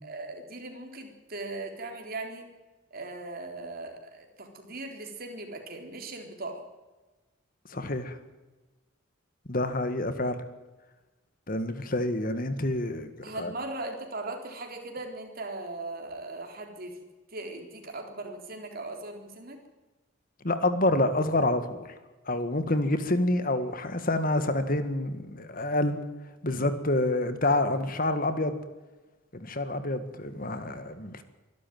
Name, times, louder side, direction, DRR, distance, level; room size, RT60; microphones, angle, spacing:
voice 1, 0.0-2.5 2.9-6.6 13.2-17.0 17.3-19.6 26.5-26.7, right 2 dB, 45° right, 3 dB, 4.0 m, -39 dB
voice 2, 7.7-8.2 9.5-10.4 11.5-13.1 13.4-13.5 20.4-21.8 22.3-26.0 26.4-28.6 29.3-31.2, left 1 dB, 45° left, 10 dB, 1.8 m, -27 dB
24.5 x 12.5 x 9.4 m, 1.2 s
head